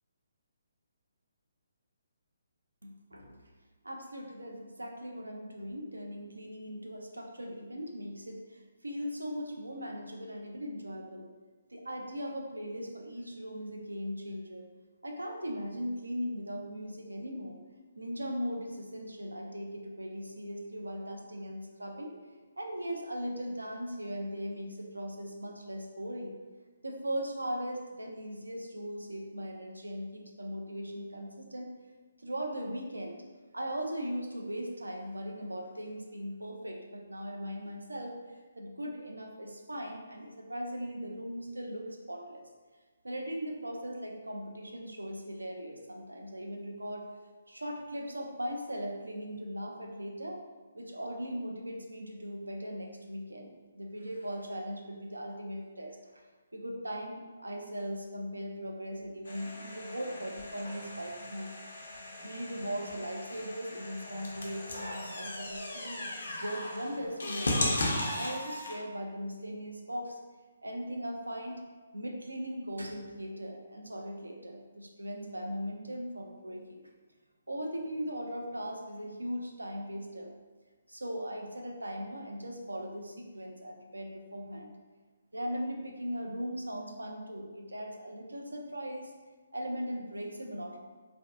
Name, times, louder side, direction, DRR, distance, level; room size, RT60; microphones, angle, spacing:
voice 1, 2.8-3.4 3.8-11.3 11.7-14.7 15.0-17.6 18.0-22.1 22.6-26.3 26.8-31.7 32.2-33.2 33.5-42.4 43.0-47.1 47.5-50.4 50.7-56.3 56.5-61.5 62.2-66.0 66.4-70.2 70.6-71.6 71.9-76.8 77.5-80.3 80.9-84.8 85.3-89.1 89.5-90.8, equal, 85° right, 1 dB, 0.4 m, -39 dB
sound 1, 59.2-68.8, left 1 dB, 70° left, 0.5 m, -37 dB
2.5 x 2.2 x 2.3 m, 1.3 s
figure-of-eight pair, 140°, 0 cm